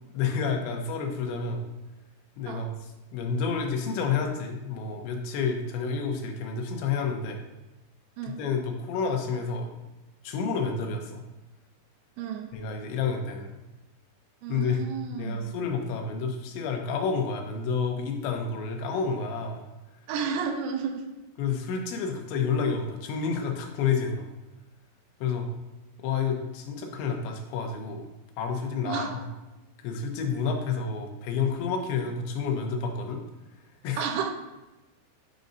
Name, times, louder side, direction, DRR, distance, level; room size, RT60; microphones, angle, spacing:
voice 1, 0.1-1.6 2.4-2.8 3.1-7.4 8.2-9.7 10.2-11.2 12.5-13.6 14.5-14.8 15.1-19.6 21.4-24.3 25.2-25.5 26.0-28.1 28.4-29.2 29.8-33.2 33.8-34.0, left 5 dB, 90° left, 3 dB, 3.2 m, -29 dB
voice 2, 12.2-12.6 14.4-15.4 20.1-21.1 28.9-29.2 34.0-34.3, right 6 dB, 80° right, 5 dB, 2.7 m, -32 dB
10.5 x 5.1 x 2.7 m, 1.0 s
omnidirectional pair, 5.1 m